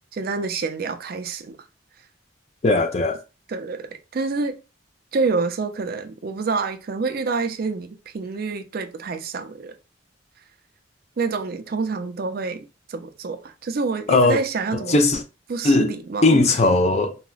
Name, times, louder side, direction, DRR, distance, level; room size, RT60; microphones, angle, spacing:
voice 1, 0.1-1.6 3.5-4.5 5.1-9.7 11.2-15.0 15.5-16.4, right 4 dB, 50° right, 0.4 m, -27 dB
voice 2, 2.6-3.2 14.1-14.4 14.7-15.2 15.6-15.9 16.2-17.2, left 2 dB, 35° left, 0.4 m, -18 dB
3.8 x 2.1 x 2.3 m
head